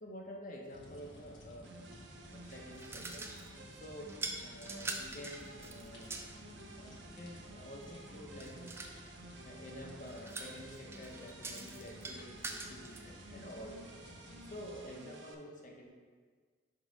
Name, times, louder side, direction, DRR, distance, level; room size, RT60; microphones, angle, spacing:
voice 1, 0.0-2.0 2.3-3.3 3.7-6.3 6.7-8.7 9.0-13.8 14.4-15.9, equal, 45° left, 0 dB, 0.8 m, -49 dB
sound 1, 0.7-14.9, equal, 80° left, 1.2 m, -54 dB
sound 2, 1.6-15.3, right 2 dB, 70° right, 0.6 m, -53 dB
sound 3, 2.3-3.6 4.1-6.4 8.4-9.0 10.1-13.0, right 3 dB, 15° right, 0.3 m, -44 dB
4.9 x 3.8 x 5.0 m, 1.5 s
head